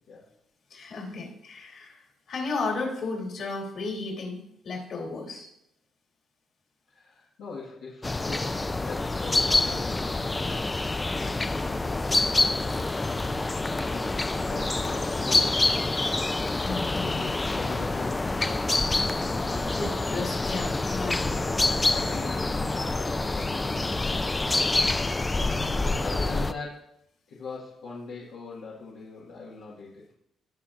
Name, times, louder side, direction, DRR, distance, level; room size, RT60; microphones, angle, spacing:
voice 1, 0.7-5.5 16.6-17.3 19.7-21.6 25.3-26.0, left 3 dB, 65° left, -1 dB, 3.0 m, -34 dB
voice 2, 6.9-10.6 11.1-12.1 12.3-12.9 13.7-15.7 17.0-18.9 19.2-19.8 21.2-24.5 25.7-26.9 27.3-30.0, left 4 dB, 80° left, -6 dB, 1.6 m, -41 dB
sound 1, 8.0-26.5, left 2 dB, 20° left, 0.4 m, -27 dB
17.0 x 5.8 x 2.5 m, 0.78 s
cardioid pair, 90°, 0 cm